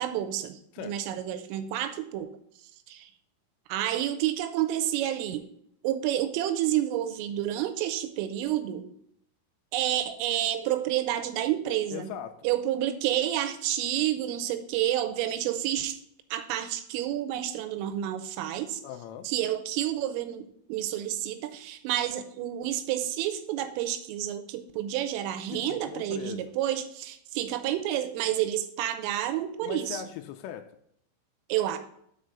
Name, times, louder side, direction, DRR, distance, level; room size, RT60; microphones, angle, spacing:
voice 1, 0.0-2.3 2.9-3.1 3.7-5.4 5.8-8.9 9.7-12.1 12.4-16.0 16.3-18.8 19.3-30.0 31.5-31.8, right 12 dB, 85° right, 10 dB, 3.2 m, -29 dB
voice 2, 11.9-12.4 18.8-19.3 25.5-26.5 29.6-30.7, left 10 dB, 80° left, 9 dB, 3.0 m, -39 dB
6.6 x 5.4 x 6.4 m, 0.69 s
omnidirectional pair, 5.9 m